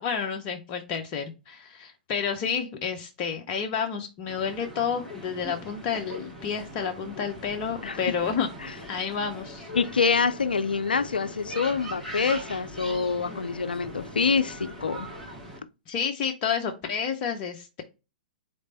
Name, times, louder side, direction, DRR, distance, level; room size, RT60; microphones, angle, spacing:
voice 1, 0.0-8.5 8.9-9.7 15.9-17.8, left 6 dB, 35° left, 0.7 m, -30 dB
sound 1, 4.3-15.6, equal, 5° left, 2.4 m, -41 dB
voice 2, 9.7-15.1, left 5 dB, 80° left, 0.4 m, -26 dB
4.1 x 3.3 x 4.0 m
figure-of-eight pair, 110°, 5 cm